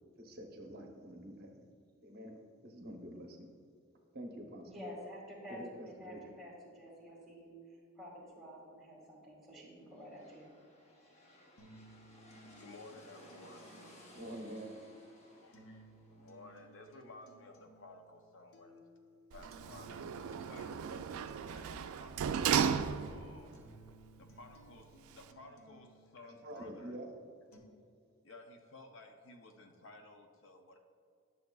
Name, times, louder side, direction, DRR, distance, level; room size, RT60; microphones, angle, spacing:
voice 1, 0.2-1.6 2.0-3.5 4.1-4.7 5.5-6.2 14.1-14.7 26.4-27.1, right 1 dB, 45° right, 2 dB, 0.8 m, -47 dB
voice 2, 4.7-5.6 5.9-10.6, equal, ahead, -4 dB, 1.8 m, -50 dB
sound 1, 9.8-17.5, equal, 30° left, 0.9 m, -59 dB
sound 2, 11.6-27.6, right 1 dB, 90° left, 0.9 m, -61 dB
voice 3, 12.5-13.7 15.3-18.8 19.3-21.0 21.5-23.6 24.2-27.0 28.2-30.8, left 2 dB, 60° left, 4 dB, 0.6 m, -55 dB
Sliding door, 19.3-23.4 23.9-24.0, right 7 dB, 80° right, 0.3 m, -35 dB
10.5 x 6.5 x 2.3 m, 2.3 s
head